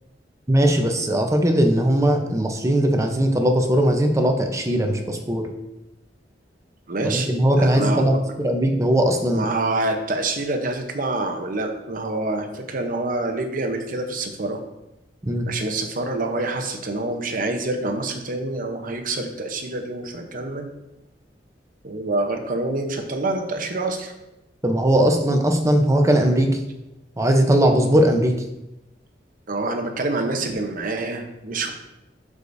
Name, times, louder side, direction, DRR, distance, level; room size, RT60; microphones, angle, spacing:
voice 1, 0.5-5.5 7.0-9.5 15.2-15.5 24.6-26.5 27.2-28.4, right 1 dB, 15° right, 4 dB, 0.7 m, -19 dB
voice 2, 6.9-7.3 7.6-8.1 9.3-14.6 15.5-20.7 21.8-24.1 29.5-31.7, right 2 dB, 50° right, 5 dB, 0.9 m, -26 dB
11.5 x 4.9 x 2.7 m, 0.93 s
head